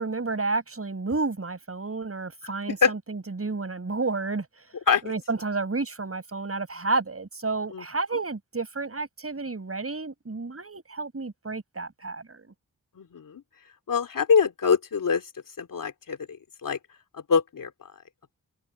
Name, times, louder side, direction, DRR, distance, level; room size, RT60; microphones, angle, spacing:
voice 1, 0.0-4.5 5.0-12.5, right 3 dB, 45° right, 5.6 m, -31 dB
voice 2, 13.0-13.4 13.9-15.3 15.6-16.8 17.1-17.7, left 6 dB, 75° left, 2.8 m, -24 dB
cardioid pair, 40°, 33 cm